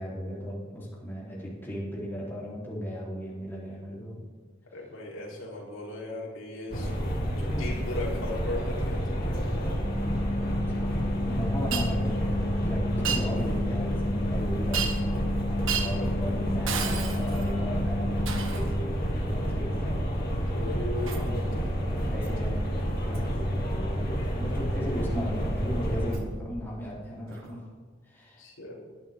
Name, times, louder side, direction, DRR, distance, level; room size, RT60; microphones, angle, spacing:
voice 1, 0.0-4.2 7.2-7.7 11.2-20.1 21.0-21.5 22.0-22.6 23.0-27.6 28.1-28.4, equal, 10° left, -7 dB, 3.8 m, -36 dB
voice 2, 4.7-6.9 7.6-9.7 20.5-21.6 28.4-28.7, left 1 dB, 85° left, -4 dB, 4.1 m, -37 dB
sound 1, 6.7-26.2, equal, 50° left, 2.6 m, -29 dB
sound 2, 9.8-18.5, left 2 dB, 25° right, 2.2 m, -33 dB
Shatter, 11.7-11.9 13.1-13.3 14.7-15.2 15.7-16.0 16.7-17.5 18.3-18.7 21.1-21.3 22.2-22.4 23.1-23.3 26.1-26.2 27.3-27.4, right 7 dB, 90° right, 1.5 m, -32 dB
20.0 x 11.5 x 3.8 m, 1.4 s
head